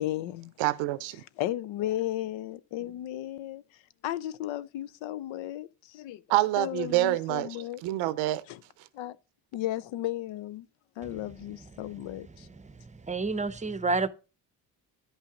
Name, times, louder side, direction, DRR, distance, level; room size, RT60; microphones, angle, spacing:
voice 1, 0.0-0.5 1.4-3.6 4.0-6.2 6.6-7.8 8.5-8.6 8.9-9.2 9.5-10.7 11.0-12.5, left 13 dB, 80° left, 0.6 m, -34 dB
voice 2, 0.6-1.2 6.3-8.4, right 16 dB, 90° right, 0.7 m, -27 dB
voice 3, 12.6-14.1, right 3 dB, 15° right, 0.6 m, -30 dB
10.5 x 5.6 x 3.7 m
supercardioid pair, 70°, 45 cm